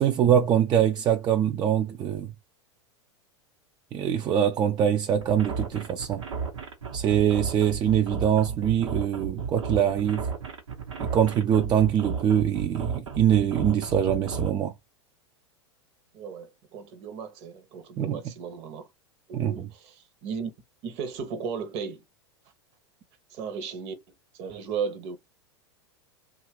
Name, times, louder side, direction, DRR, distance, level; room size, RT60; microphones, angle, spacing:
voice 1, 0.0-2.3 3.9-6.2 6.9-10.3 11.0-14.7 18.0-18.2 19.3-19.7, right 9 dB, 30° right, 0.4 m, -23 dB
sound 1, 5.2-14.5, right 5 dB, 85° right, 1.1 m, -33 dB
voice 2, 16.1-18.9 19.3-20.5 20.8-22.0 23.3-23.9 24.4-25.2, right 6 dB, 45° right, 0.9 m, -35 dB
2.8 x 2.5 x 3.0 m
hypercardioid pair, 100°, 15 cm